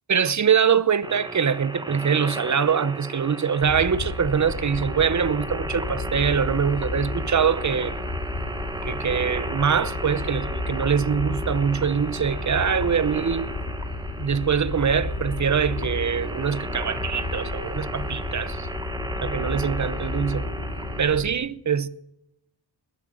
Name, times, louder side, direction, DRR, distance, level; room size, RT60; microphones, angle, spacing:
voice 1, 0.1-7.9 8.8-13.5 14.2-18.7 19.2-20.5 21.0-21.9, right 7 dB, 40° right, 0.8 m, -23 dB
sound 1, 1.0-21.0, right 1 dB, 10° right, 1.3 m, -35 dB
sound 2, 3.6-21.3, left 2 dB, 65° left, 2.3 m, -32 dB
20.5 x 8.0 x 7.7 m
wide cardioid pair, 115°, 42 cm